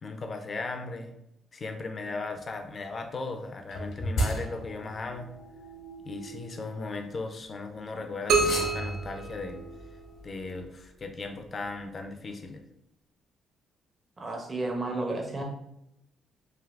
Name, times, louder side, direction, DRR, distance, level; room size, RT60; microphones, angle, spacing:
voice 1, 0.0-1.1 1.5-5.3 6.0-9.6 10.2-12.6, left 3 dB, 40° left, 6 dB, 0.5 m, -37 dB
sound 1, 3.7-7.5 8.3-10.6, equal, 75° left, 1.0 m, -36 dB
sound 2, 8.3-10.2, right 4 dB, 70° right, 0.5 m, -28 dB
voice 2, 14.2-15.4, right 2 dB, 30° right, 1 dB, 0.6 m, -32 dB
3.4 x 2.5 x 2.4 m, 0.81 s
cardioid pair, 90°, 0 cm